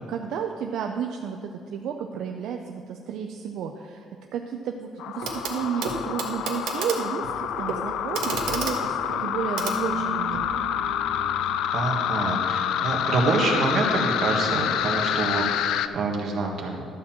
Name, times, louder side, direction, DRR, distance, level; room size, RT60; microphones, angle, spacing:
voice 1, 0.1-4.1 4.3-10.6, right 7 dB, 70° right, 3 dB, 0.5 m, -32 dB
sound 1, 5.0-15.9, left 10 dB, 75° left, 0.4 m, -27 dB
Clock, 5.2-5.6 5.8-10.5 11.7-11.8, right 5 dB, 90° right, 1.3 m, -33 dB
sound 2, 9.6-15.3, right 2 dB, 25° left, 0.9 m, -39 dB
voice 2, 11.7-16.9, right 3 dB, 50° right, 0 dB, 1.6 m, -26 dB
12.0 x 4.4 x 7.3 m, 2.3 s
cardioid pair, 160°, 0 cm